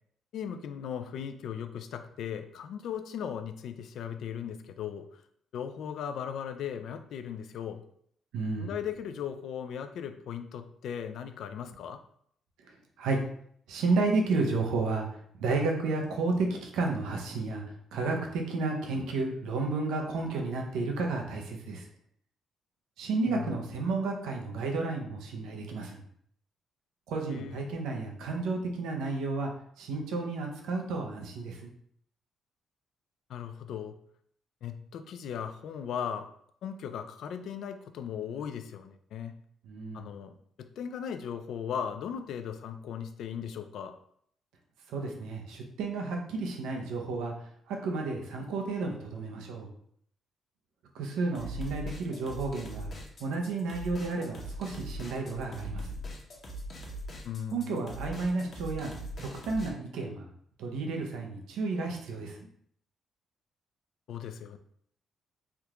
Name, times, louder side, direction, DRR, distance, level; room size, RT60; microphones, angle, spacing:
voice 1, 0.3-5.2 5.5-7.8 8.6-12.0 23.3-23.6 27.3-27.7 33.3-34.0 34.6-36.3 36.6-39.3 39.9-40.3 40.6-43.9 51.4-51.6 57.2-57.7 64.1-64.6, left 8 dB, 75° left, 9 dB, 0.3 m, -37 dB
voice 2, 8.3-8.7 13.0-13.2 13.7-15.1 15.4-17.6 17.9-21.8 23.0-26.0 27.1-29.5 29.8-31.7 39.6-40.1 44.9-47.3 47.7-49.7 50.9-52.9 53.2-56.0 57.5-58.9 59.2-60.3 60.6-62.4, right 3 dB, 85° right, 2 dB, 0.6 m, -32 dB
sound 1, 51.3-59.7, equal, 45° left, 0.9 m, -41 dB
3.4 x 2.4 x 2.9 m, 0.66 s
cardioid pair, 90°, 0 cm